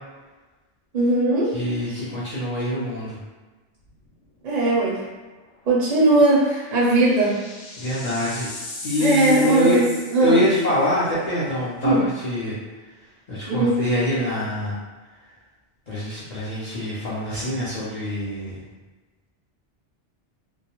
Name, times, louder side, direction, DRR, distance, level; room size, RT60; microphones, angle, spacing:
voice 1, 0.9-1.6 4.4-5.0 5.7-7.4 9.0-10.4 11.8-12.1 13.5-13.8, right 2 dB, 50° right, -5 dB, 0.5 m, -19 dB
voice 2, 1.5-3.2 7.8-8.5 8.8-9.8 10.2-12.6 13.3-14.8 15.9-18.6, left 1 dB, 55° left, -9 dB, 0.5 m, -25 dB
sound 1, 3.9-4.2 4.6-4.7 6.1-10.7, left 2 dB, 85° left, 0.9 m, -38 dB
2.2 x 2.1 x 2.8 m, 1.2 s
omnidirectional pair, 1.2 m